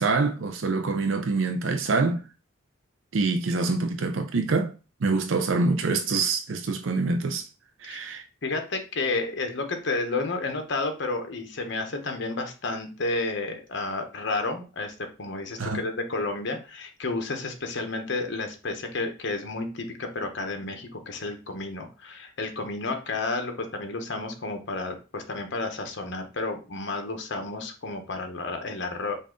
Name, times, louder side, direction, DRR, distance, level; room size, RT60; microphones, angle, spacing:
voice 1, 0.0-2.2 3.1-4.7 5.0-7.4 7.8-8.2 15.6-15.8, right 3 dB, 70° right, 0.5 m, -25 dB
voice 2, 8.4-29.2, left 3 dB, 60° left, 0.9 m, -31 dB
5.5 x 2.5 x 3.8 m
head